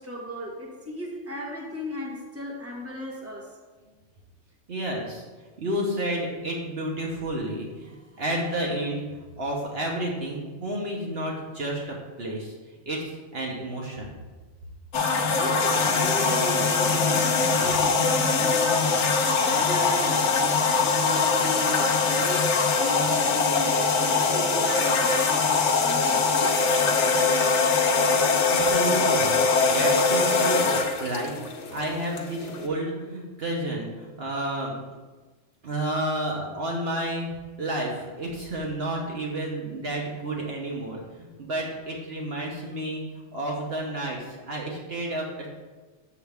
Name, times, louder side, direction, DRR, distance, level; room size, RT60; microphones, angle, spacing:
voice 1, 0.0-3.6 14.9-22.4 22.8-26.6, equal, 10° right, -3 dB, 1.4 m, -35 dB
voice 2, 4.7-14.1 28.5-30.7 31.0-34.7 35.6-37.3 37.6-45.5, right 1 dB, 60° right, -2 dB, 1.3 m, -31 dB
sound 1, 14.9-32.7, left 4 dB, 75° left, 1.1 m, -22 dB
7.2 x 6.8 x 3.5 m, 1.3 s
omnidirectional pair, 1.2 m